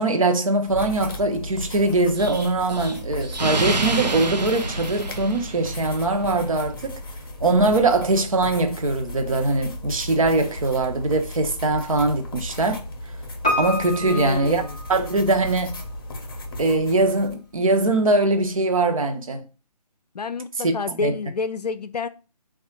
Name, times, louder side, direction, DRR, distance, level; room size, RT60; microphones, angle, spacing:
voice 1, 0.0-7.0 7.4-12.8 13.6-14.6 14.9-15.8 16.6-19.5 20.6-21.1, right 2 dB, 55° right, 0.7 m, -22 dB
sound 1, 0.7-17.3, left 1 dB, 35° left, 0.7 m, -35 dB
Explosion, 2.2-6.0, right 3 dB, 90° right, 0.6 m, -28 dB
Piano, 13.4-15.5 15.8-15.9, left 1 dB, 10° left, 0.3 m, -28 dB
voice 2, 14.0-14.8 20.1-22.1, left 4 dB, 75° left, 0.5 m, -29 dB
3.4 x 2.4 x 3.9 m
figure-of-eight pair, 150°, 21 cm